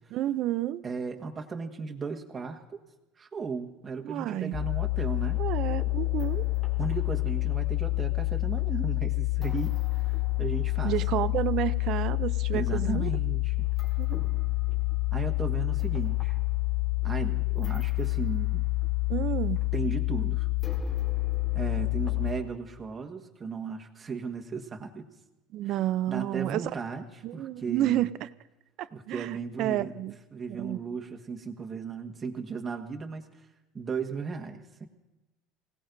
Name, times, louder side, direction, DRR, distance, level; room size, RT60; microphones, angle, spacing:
voice 1, 0.1-0.8 4.0-4.6 5.4-6.4 10.8-13.1 14.0-14.1 19.1-19.7 25.5-26.7 27.2-28.3 28.8-30.2 30.5-31.0, right 13 dB, 50° right, 15 dB, 0.5 m, -30 dB
voice 2, 0.8-2.8 3.2-5.4 6.8-10.1 10.4-11.0 12.5-13.7 15.1-16.4 17.0-18.7 19.7-20.5 21.5-25.1 25.6-25.8 26.0-28.0 28.9-29.9 30.3-33.2 33.7-34.9, right 5 dB, 20° right, 2 dB, 1.5 m, -36 dB
sound 1, 4.5-22.3, left 22 dB, 25° left, 2.6 m, -28 dB
27.0 x 17.5 x 2.7 m, 1.1 s
cardioid pair, 140°, 0 cm